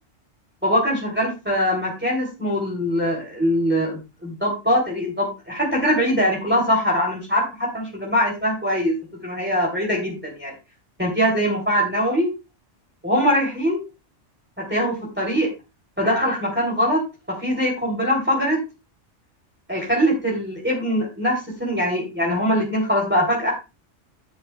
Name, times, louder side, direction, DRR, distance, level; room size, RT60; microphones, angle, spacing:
voice 1, 0.6-8.9 9.2-10.5 11.0-12.3 13.0-13.8 14.7-15.5 16.0-17.0 17.4-18.6 19.7-23.5, equal, 10° right, -3 dB, 3.3 m, -22 dB
11.0 x 10.5 x 2.3 m, 0.28 s
omnidirectional pair, 1.3 m